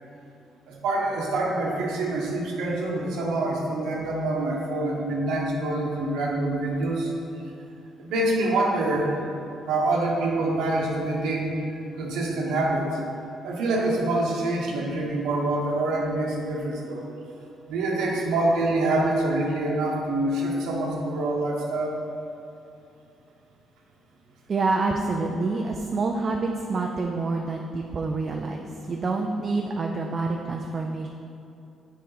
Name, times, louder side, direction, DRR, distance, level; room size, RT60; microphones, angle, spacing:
voice 1, 0.7-7.1 8.0-9.2 9.7-11.6 12.0-12.9 13.4-17.1 17.7-22.0, right 2 dB, 90° right, -2 dB, 1.0 m, -26 dB
voice 2, 24.5-31.1, right 3 dB, 40° right, 2 dB, 0.4 m, -27 dB
6.9 x 4.8 x 3.9 m, 2.7 s
cardioid pair, 90°, 0 cm